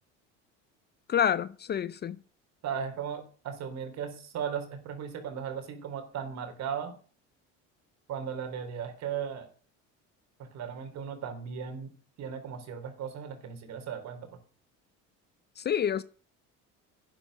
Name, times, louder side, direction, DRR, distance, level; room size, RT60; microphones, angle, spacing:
voice 1, 1.1-2.2 15.6-16.0, left 9 dB, 35° left, 0.6 m, -28 dB
voice 2, 2.6-6.9 8.1-9.5 10.4-11.9 12.2-14.3, right 7 dB, 60° right, 3.7 m, -36 dB
11.5 x 9.9 x 6.6 m
cardioid pair, 120°, 31 cm